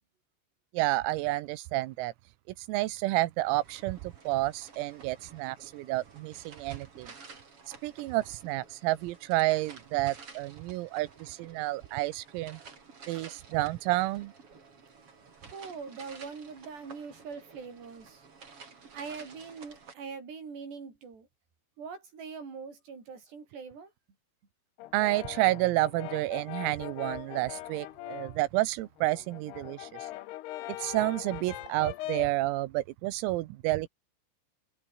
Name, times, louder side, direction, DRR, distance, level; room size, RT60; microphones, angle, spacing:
voice 1, 0.7-2.1 2.6-7.1 7.8-12.6 13.1-14.3 24.9-30.1 30.8-33.9, right 18 dB, 90° right, 3.8 m, -30 dB
sound 1, 3.5-19.9, right 5 dB, 30° right, 3.8 m, -52 dB
voice 2, 15.4-18.2 18.9-21.3 21.8-23.9, right 5 dB, 55° right, 8.5 m, -42 dB
Brass instrument, 24.8-28.4 28.8-32.4, left 16 dB, 80° left, 2.5 m, -41 dB
omnidirectional pair, 6.0 m